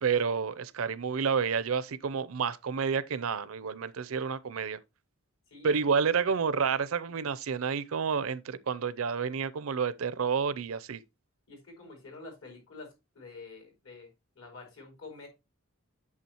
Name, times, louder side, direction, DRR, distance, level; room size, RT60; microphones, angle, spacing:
voice 1, 0.0-4.8 5.6-11.0, right 6 dB, 70° right, 0.5 m, -29 dB
voice 2, 11.5-14.1 14.3-15.3, left 3 dB, 75° left, 4.7 m, -47 dB
8.4 x 6.8 x 2.9 m
head